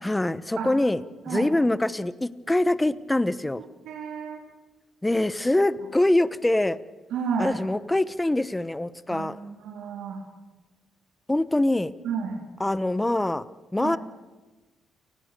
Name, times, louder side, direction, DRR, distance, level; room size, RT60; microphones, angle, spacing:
voice 1, 0.0-3.6 5.0-6.8 7.4-9.4 11.3-11.9 12.6-13.5 13.7-14.0, left 1 dB, 10° left, 15 dB, 1.0 m, -24 dB
voice 2, 3.9-4.4 7.1-7.5 9.1-10.2 12.0-12.4 13.8-14.0, right 6 dB, 80° right, 0 dB, 3.8 m, -31 dB
29.0 x 20.0 x 6.8 m, 1.2 s
cardioid pair, 90°, 0 cm